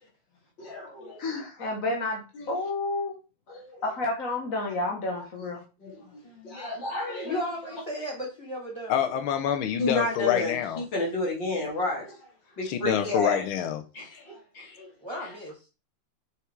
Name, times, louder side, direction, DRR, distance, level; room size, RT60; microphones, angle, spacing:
voice 1, 0.6-1.4 2.3-2.5 3.5-3.8 5.8-7.4 9.8-12.2 12.6-13.4 13.9-14.9 15.2-15.3, left 2 dB, 60° left, 3.3 m, -32 dB
voice 2, 1.2-2.2 2.5-3.1 3.8-5.6, left 2 dB, 45° left, 1.5 m, -30 dB
voice 3, 7.2-9.2 15.0-15.5, equal, 15° right, 2.2 m, -35 dB
voice 4, 8.9-10.8 12.6-13.8, left 9 dB, 85° left, 1.6 m, -27 dB
7.0 x 4.7 x 4.6 m
omnidirectional pair, 2.2 m